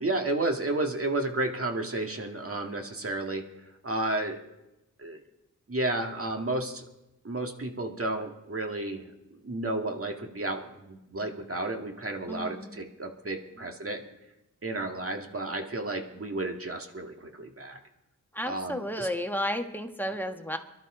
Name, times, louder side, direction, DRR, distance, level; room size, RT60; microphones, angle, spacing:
voice 1, 0.0-3.4 3.8-4.4 5.0-5.2 5.7-6.8 7.2-9.0 9.4-14.0 14.6-17.8 18.4-19.1, right 2 dB, 45° right, 3 dB, 1.9 m, -32 dB
voice 2, 12.3-12.8 18.3-20.6, equal, 5° left, 5 dB, 1.3 m, -32 dB
23.0 x 12.0 x 3.8 m, 0.94 s
cardioid pair, 50°, 32 cm